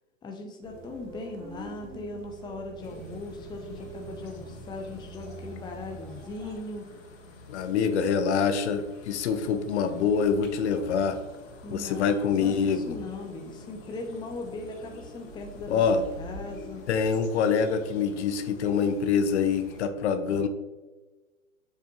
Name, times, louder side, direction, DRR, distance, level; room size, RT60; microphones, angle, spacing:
voice 1, 0.2-6.9 11.6-15.8 16.2-16.8 20.1-20.4, left 3 dB, 10° left, 3 dB, 0.8 m, -39 dB
sound 1, 0.6-6.6, right 4 dB, 65° right, 2.0 m, -44 dB
sound 2, 2.8-19.9, left 1 dB, 35° left, 1.8 m, -47 dB
voice 2, 7.5-11.2 11.7-13.0 15.7-16.0 16.9-20.5, left 6 dB, 55° left, 8 dB, 0.8 m, -25 dB
7.5 x 6.7 x 3.1 m, 1.2 s
hypercardioid pair, 120°, 40 cm